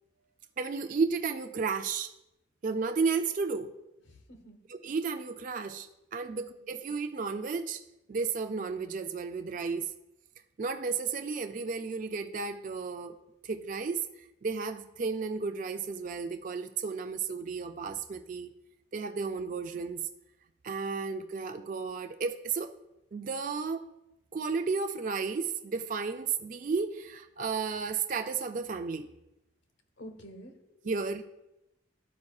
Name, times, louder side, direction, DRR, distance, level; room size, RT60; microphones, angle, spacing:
voice 1, 0.6-2.1 2.6-3.7 4.7-7.8 8.1-9.9 10.6-13.1 13.4-14.0 14.4-18.5 18.9-20.0 20.6-22.7 23.1-23.9 24.3-29.1 30.9-31.2, right 5 dB, 45° right, 7 dB, 0.3 m, -33 dB
voice 2, 4.1-4.6 6.3-6.7 30.0-31.0, equal, 80° left, 6 dB, 1.1 m, -50 dB
12.5 x 5.2 x 2.3 m, 0.91 s
head